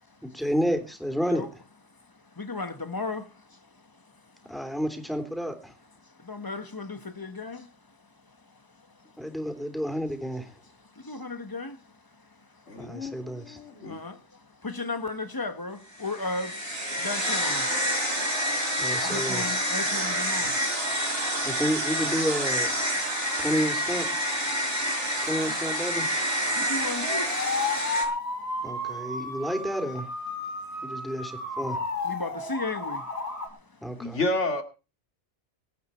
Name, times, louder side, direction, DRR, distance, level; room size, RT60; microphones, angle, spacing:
voice 1, 0.2-1.5 4.5-5.7 9.2-10.5 12.8-13.6 18.8-19.6 21.4-22.7 23.4-24.1 25.3-26.1 28.6-30.1 30.8-31.8 33.8-34.2, equal, ahead, 3.4 m, -30 dB
voice 2, 2.3-3.6 6.2-7.7 10.9-11.8 12.7-12.8 13.8-16.7 16.9-17.9 18.3-18.4 19.0-20.6 21.2-21.3 26.5-27.4 30.7-31.1 32.0-33.1, left 3 dB, 20° left, 1.5 m, -35 dB
voice 3, 12.7-14.0 34.0-34.6, left 2 dB, 80° left, 2.6 m, -30 dB
sound 1, 16.0-28.1, equal, 55° right, 6.5 m, -28 dB
sound 2, 26.6-33.5, left 3 dB, 60° left, 4.3 m, -33 dB
24.0 x 9.4 x 4.5 m
omnidirectional pair, 1.2 m